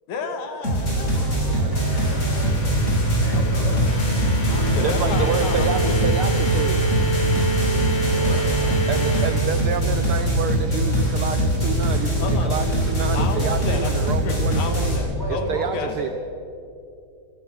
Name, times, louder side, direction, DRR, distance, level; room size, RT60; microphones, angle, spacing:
voice 1, 0.1-2.5 3.3-3.9 4.7-6.0 12.2-12.6 13.1-15.9, left 4 dB, 80° left, 6 dB, 3.2 m, -32 dB
sound 1, 0.6-15.0, right 1 dB, 20° left, 5.7 m, -22 dB
voice 2, 1.4-3.7 4.4-5.5 8.0-8.5 13.3-13.5 13.8-13.9 15.2-16.1, right 1 dB, 5° left, -3 dB, 6.1 m, -35 dB
sound 2, 1.7-10.0, right 2 dB, 50° left, 4.5 m, -26 dB
voice 3, 4.8-7.1 8.9-14.9 15.3-16.1, right 7 dB, 90° right, 9 dB, 1.2 m, -29 dB
29.5 x 15.0 x 6.2 m, 2.5 s
omnidirectional pair, 3.4 m